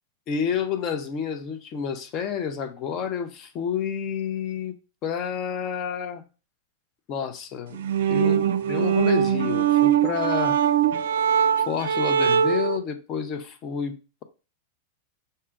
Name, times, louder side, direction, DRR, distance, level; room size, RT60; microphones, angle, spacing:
voice 1, 0.3-4.7 5.0-6.2 7.1-7.8 8.1-10.6 11.7-14.2, left 7 dB, 40° left, 0.7 m, -29 dB
sound 1, 7.7-12.8, right 9 dB, 70° right, 0.4 m, -22 dB
5.5 x 2.2 x 3.7 m
hypercardioid pair, 100°, 0 cm